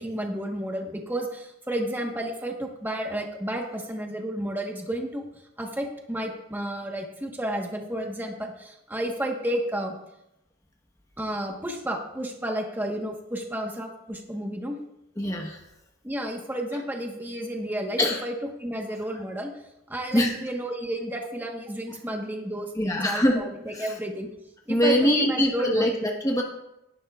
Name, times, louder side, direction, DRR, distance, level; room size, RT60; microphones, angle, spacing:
voice 1, 0.0-5.2 5.6-10.0 11.2-14.8 16.0-18.3 18.6-19.5 19.9-24.3 24.7-25.9, right 1 dB, 10° right, 1 dB, 1.3 m, -31 dB
voice 2, 15.2-15.6 18.0-18.2 20.1-20.4 22.8-23.4 23.7-23.9 24.7-26.4, equal, 15° left, 1 dB, 1.2 m, -23 dB
18.0 x 11.5 x 2.4 m, 0.86 s
head